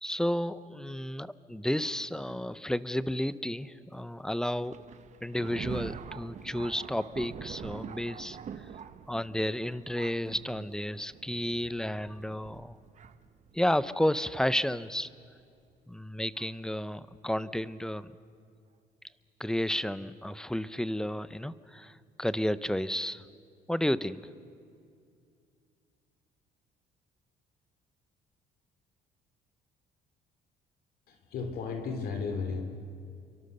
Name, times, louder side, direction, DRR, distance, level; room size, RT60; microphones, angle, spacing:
voice 1, 0.0-4.8 5.2-8.4 9.1-12.8 13.5-15.1 15.9-18.1 19.4-23.2 23.7-24.3, left 1 dB, 5° left, 15 dB, 0.7 m, -32 dB
Thunder, 4.6-14.5 15.2-15.3 16.4-16.5 17.3-17.4, right 8 dB, 45° right, 1.0 m, -45 dB
voice 2, 31.1-32.6, left 5 dB, 65° left, 4 dB, 3.2 m, -34 dB
29.5 x 23.5 x 6.8 m, 2.4 s
cardioid pair, 110°, 17 cm